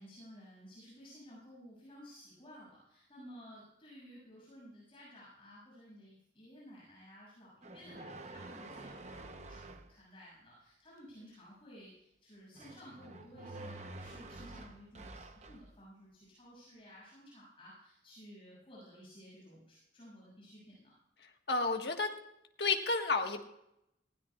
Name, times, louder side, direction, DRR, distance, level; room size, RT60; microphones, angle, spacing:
voice 1, 0.0-20.9, equal, 30° left, -6 dB, 6.8 m, -55 dB
sound 1, 7.6-9.9 12.5-15.7, right 2 dB, 40° right, 0.9 m, -48 dB
voice 2, 21.2-22.1 22.6-23.4, left 3 dB, 65° left, 4 dB, 1.5 m, -32 dB
19.0 x 16.0 x 2.4 m, 0.81 s
head